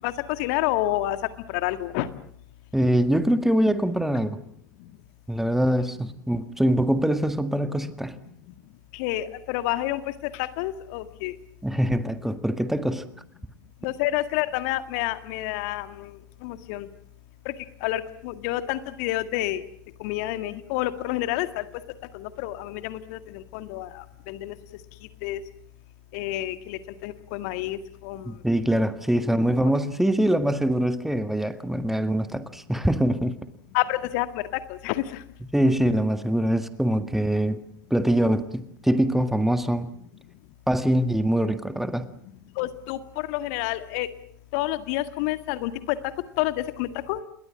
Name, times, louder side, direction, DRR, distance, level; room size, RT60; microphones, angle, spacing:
voice 1, 0.0-1.2 1.5-2.1 8.9-10.0 10.4-11.3 13.8-16.1 16.4-16.9 17.5-17.6 17.8-19.6 20.0-21.6 22.1-24.5 25.2-25.4 26.1-28.3 33.7-34.4 34.7-35.0 42.6-44.1 44.5-46.0 46.4-47.2, left 15 dB, 50° left, 10 dB, 1.9 m, -29 dB
voice 2, 2.7-4.4 5.3-8.2 11.6-13.1 28.3-33.4 35.5-37.6 37.9-39.9 40.7-42.1, right 1 dB, 5° right, 10 dB, 1.8 m, -23 dB
28.0 x 22.0 x 7.5 m, 0.63 s
figure-of-eight pair, 80°, 10 cm